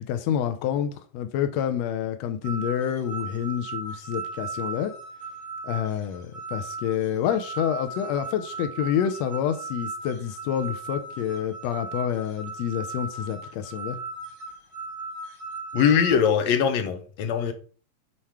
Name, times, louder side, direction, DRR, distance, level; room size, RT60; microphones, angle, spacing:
voice 1, 0.0-4.9 5.6-14.0, left 9 dB, 85° left, 1.5 m, -28 dB
sound 1, 2.4-16.3, right 3 dB, 30° right, 2.3 m, -37 dB
voice 2, 15.7-17.5, left 7 dB, 65° left, 1.9 m, -21 dB
7.6 x 4.3 x 4.8 m
omnidirectional pair, 3.9 m